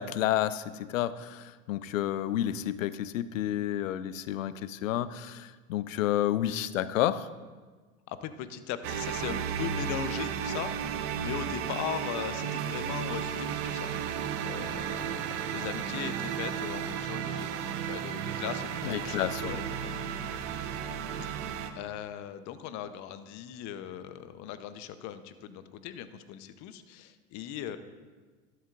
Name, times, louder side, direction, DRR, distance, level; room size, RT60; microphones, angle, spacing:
voice 1, 0.0-7.3 18.8-19.6 21.2-21.3, left 12 dB, 75° left, 15 dB, 0.6 m, -30 dB
voice 2, 8.1-20.2 21.4-27.8, left 10 dB, 45° left, 11 dB, 0.9 m, -39 dB
sound 1, 8.8-21.7, right 8 dB, 60° right, 0.9 m, -34 dB
12.5 x 11.0 x 2.5 m, 1.4 s
hypercardioid pair, 90°, 40 cm